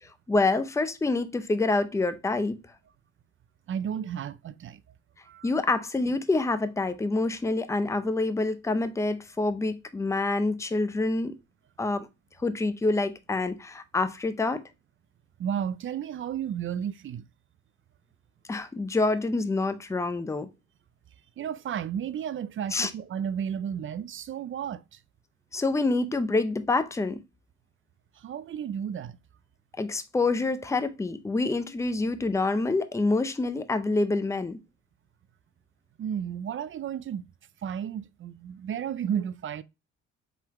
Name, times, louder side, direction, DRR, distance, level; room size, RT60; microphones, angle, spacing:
voice 1, 0.0-2.6 5.4-11.3 11.8-12.1 12.4-14.6 18.5-20.5 22.7-22.9 25.5-27.2 29.8-34.6, left 3 dB, 10° left, 0.5 m, -27 dB
voice 2, 3.7-4.8 5.2-5.5 15.4-17.2 21.4-25.0 28.2-29.2 36.0-37.2 37.6-39.6, right 8 dB, 45° right, 0.4 m, -33 dB
4.5 x 3.9 x 2.8 m
cardioid pair, 90°, 30 cm